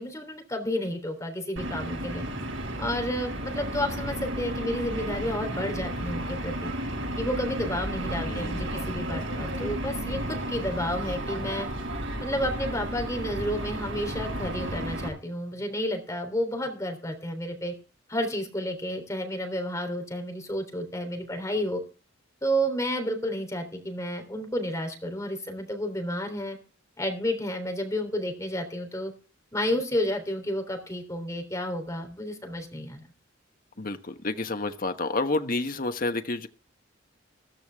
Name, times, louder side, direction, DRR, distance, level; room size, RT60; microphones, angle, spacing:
voice 1, 0.0-2.2 2.8-6.7 7.2-11.7 12.2-17.7 18.1-21.8 22.4-26.6 27.0-29.1 29.5-33.1, equal, 15° left, 4 dB, 3.5 m, -31 dB
sound 1, 1.6-15.1, right 1 dB, 70° right, 7.7 m, -33 dB
voice 2, 8.2-8.8 33.8-36.5, left 2 dB, 45° left, 7 dB, 1.2 m, -30 dB
14.5 x 14.0 x 3.5 m, 0.35 s
head